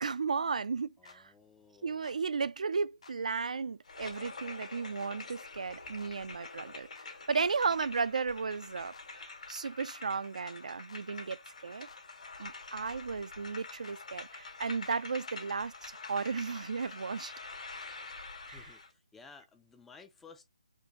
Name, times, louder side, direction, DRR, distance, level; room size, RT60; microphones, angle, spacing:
voice 1, 0.0-1.3 1.8-11.9 12.4-17.3 18.5-18.6, right 5 dB, 70° right, 0.3 m, -35 dB
sound 1, 1.0-1.2 2.0-2.2 3.0-3.2 4.0-4.1 5.0-5.5 6.0-6.1 6.9-7.1 7.9-8.1 8.9-9.1 9.9-10.0 10.9-11.0 11.9-12.0 12.8-13.0 13.8-14.0 14.8-15.3 15.8-16.3 16.8-17.3 17.8-17.9, left 5 dB, 55° left, 0.6 m, -55 dB
voice 2, 1.0-2.1 18.5-20.4, left 4 dB, 5° left, 0.3 m, -56 dB
sound 2, 3.8-18.9, left 3 dB, 75° left, 1.9 m, -47 dB
4.5 x 2.6 x 2.9 m
hypercardioid pair, 170°, 4 cm